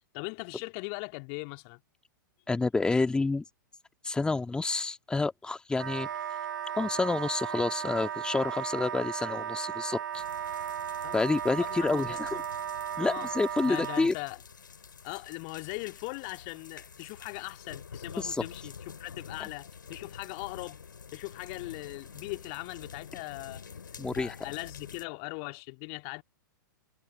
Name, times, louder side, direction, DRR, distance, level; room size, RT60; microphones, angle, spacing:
voice 1, 0.1-1.8 11.0-11.2 11.6-12.4 13.0-13.3 13.6-14.4 15.0-20.8 21.1-23.7 24.2-26.2, left 40 dB or more, 40° left, 2.0 m, -40 dB
voice 2, 2.5-3.4 4.0-6.1 6.7-10.2 11.1-12.3 13.0-14.1 18.2-18.4 24.0-24.4, left 3 dB, 10° left, 2.2 m, -29 dB
Wind instrument woodwind instrument, 5.7-14.1, right 9 dB, 65° right, 1.0 m, -35 dB
sound 1, 10.1-25.0, left 6 dB, 70° left, 5.9 m, -48 dB
figure-of-eight pair, 100°, 11 cm